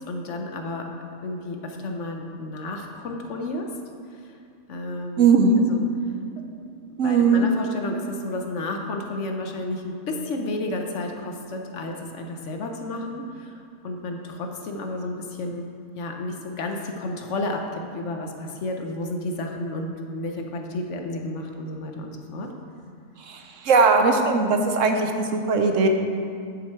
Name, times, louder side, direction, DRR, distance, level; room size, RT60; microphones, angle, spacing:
voice 1, 0.1-0.8 1.2-3.7 4.1-4.4 4.7-5.3 5.7-5.8 6.5-6.6 7.0-22.5, left 2 dB, 60° left, 3 dB, 1.0 m, -32 dB
voice 2, 5.2-5.6 7.0-7.5 23.2-25.9, right 4 dB, 65° right, 4 dB, 0.9 m, -19 dB
9.7 x 6.6 x 4.4 m, 2.4 s
omnidirectional pair, 1.5 m